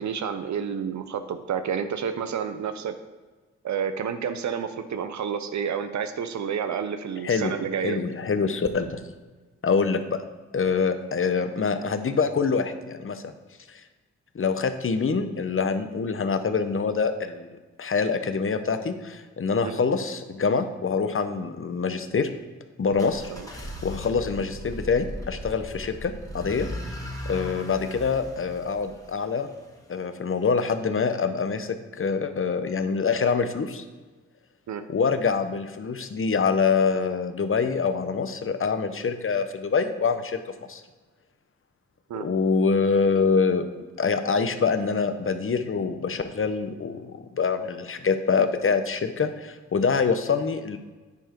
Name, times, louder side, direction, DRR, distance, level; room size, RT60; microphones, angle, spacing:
voice 1, 0.0-2.9 3.6-8.0 19.6-19.8 23.3-23.5 34.7-34.8 42.1-42.3, right 7 dB, 70° right, 9 dB, 0.7 m, -30 dB
voice 2, 7.8-9.0 9.6-10.2 10.5-13.3 13.7-13.8 14.3-22.3 22.8-26.7 27.3-29.5 29.9-33.8 34.9-40.4 40.7-40.8 42.2-43.6 44.0-50.8, left 5 dB, 45° left, 9 dB, 0.9 m, -25 dB
sound 1, 22.9-29.8, equal, 10° left, 1.8 m, -38 dB
9.7 x 4.7 x 4.5 m, 1.3 s
cardioid pair, 50°, 29 cm